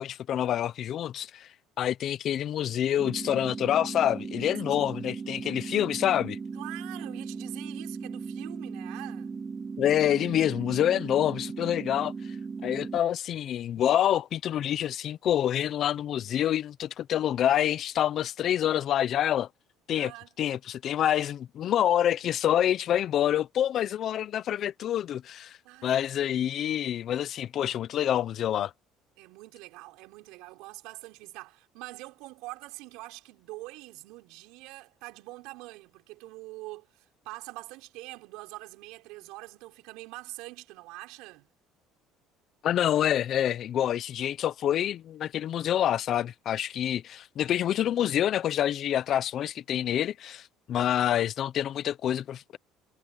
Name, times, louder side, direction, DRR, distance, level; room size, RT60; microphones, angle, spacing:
voice 1, 0.0-1.5 1.8-6.4 9.8-12.1 12.6-19.5 19.9-20.1 20.4-25.6 25.8-28.7 42.6-52.6, left 11 dB, 50° left, 0.8 m, -27 dB
sound 1, 3.0-13.0, right 5 dB, 25° right, 1.1 m, -37 dB
voice 2, 4.7-5.6 6.5-9.4 19.9-20.3 25.6-26.9 29.2-41.5, right 21 dB, 80° right, 6.5 m, -45 dB
cardioid pair, 110°, 0 cm